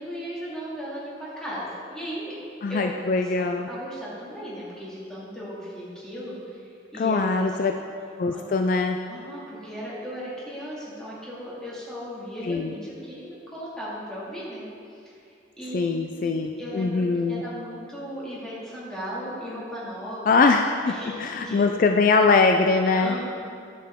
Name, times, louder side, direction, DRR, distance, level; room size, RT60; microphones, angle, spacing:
voice 1, 0.0-2.3 2.7-2.8 3.0-7.8 8.3-8.7 9.1-14.7 15.0-15.1 15.6-15.9 16.2-20.3 20.9-21.7 23.0-23.3, equal, 5° left, -8 dB, 2.1 m, -36 dB
voice 2, 2.6-3.7 6.9-7.7 8.2-9.0 12.4-12.7 15.7-17.4 20.3-23.2, left 4 dB, 50° left, 5 dB, 0.3 m, -22 dB
10.5 x 7.0 x 3.6 m, 2.4 s
head